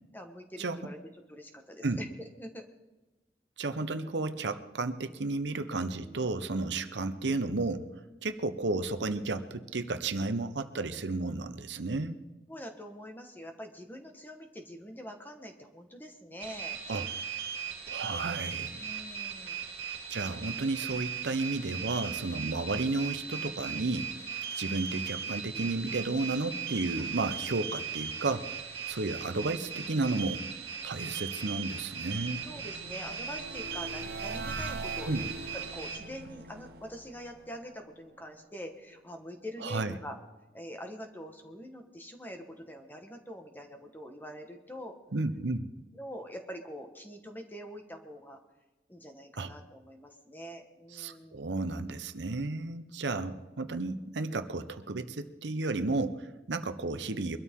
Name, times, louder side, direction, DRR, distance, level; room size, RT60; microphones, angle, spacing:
voice 1, 0.1-1.0 1.3-2.7 12.5-16.8 18.7-19.6 32.4-35.3 35.5-40.2 40.5-45.0 45.9-48.4 48.9-51.6, equal, 10° left, 4 dB, 1.4 m, -44 dB
voice 2, 3.6-7.9 8.2-12.2 16.9-17.1 17.9-18.8 20.1-24.1 24.5-28.5 28.9-30.4 30.8-32.4 35.0-35.3 39.6-39.9 45.1-45.7 49.4-49.5 50.9-57.4, right 3 dB, 90° right, 10 dB, 0.9 m, -32 dB
sound 1, 16.4-36.0, right 7 dB, 30° right, 2.6 m, -38 dB
sound 2, 31.1-38.2, right 2 dB, 60° right, 0.9 m, -43 dB
23.0 x 13.0 x 3.7 m, 1.1 s
head